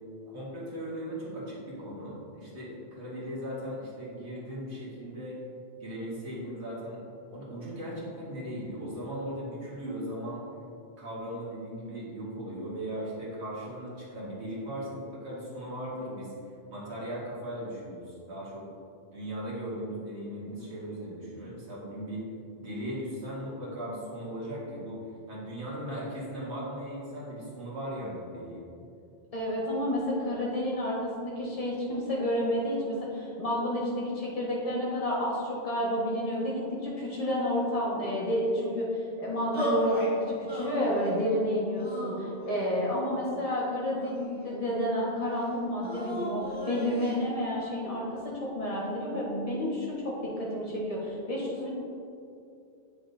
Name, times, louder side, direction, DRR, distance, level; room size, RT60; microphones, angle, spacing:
voice 1, 0.3-5.4 5.8-7.0 7.3-10.4 11.0-16.3 16.7-18.6 19.1-22.3 22.6-25.0 25.3-28.7, equal, 80° right, -6 dB, 1.9 m, -38 dB
voice 2, 29.3-51.7, equal, 35° left, -5 dB, 1.5 m, -30 dB
sound 1, 39.5-40.1 40.5-41.2 41.8-42.7 43.4-44.4 45.8-47.2, equal, 10° right, 1.6 m, -34 dB
8.1 x 6.2 x 2.7 m, 2.6 s
omnidirectional pair, 1.1 m